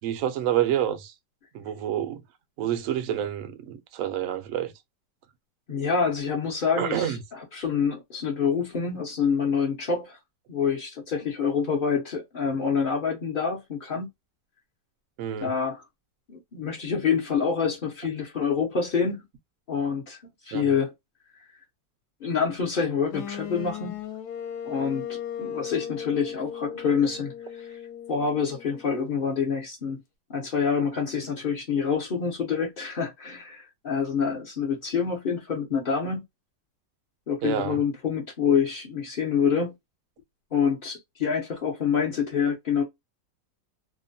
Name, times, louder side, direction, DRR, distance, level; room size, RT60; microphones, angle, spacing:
voice 1, 0.0-1.1 1.5-2.2 2.6-4.7 6.8-7.2 15.2-15.5 20.5-20.7 37.4-37.8, right 10 dB, 65° right, 0.8 m, -28 dB
voice 2, 5.7-10.2 10.5-14.1 15.4-15.8 16.3-19.2 19.7-20.2 20.4-20.9 22.2-24.0 24.6-27.8 28.1-30.0 30.3-36.2 37.3-39.7 40.5-42.8, left 6 dB, 50° left, 0.6 m, -27 dB
sound 1, 23.1-29.0, left 9 dB, 70° left, 1.1 m, -37 dB
2.9 x 2.1 x 2.5 m
omnidirectional pair, 1.9 m